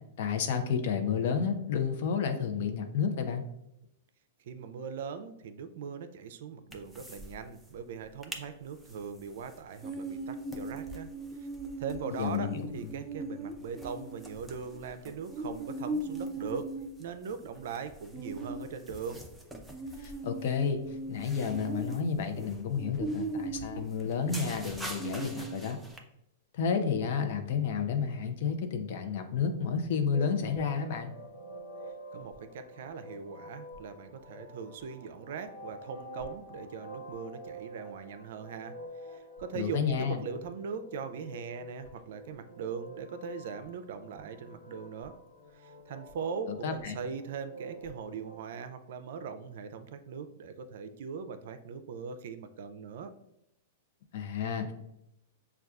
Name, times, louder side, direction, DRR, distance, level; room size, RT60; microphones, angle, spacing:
voice 1, 0.2-3.4 12.2-12.9 20.0-20.8 21.1-25.8 26.5-31.1 39.5-40.2 46.5-47.0 54.1-54.7, left 6 dB, 60° left, 7 dB, 0.6 m, -31 dB
voice 2, 4.5-11.1 11.4-11.5 11.8-16.7 17.0-19.2 32.1-38.8 39.1-45.2 45.9-53.1, right 6 dB, 65° right, 9 dB, 0.4 m, -40 dB
sound 1, 6.7-7.3 7.6-7.7 8.0-8.4 8.9-26.0, right 2 dB, ahead, 0.5 m, -39 dB
sound 2, 30.1-48.4, right 1 dB, 90° left, 0.9 m, -48 dB
6.3 x 2.3 x 2.3 m, 0.82 s
hypercardioid pair, 135°, 0 cm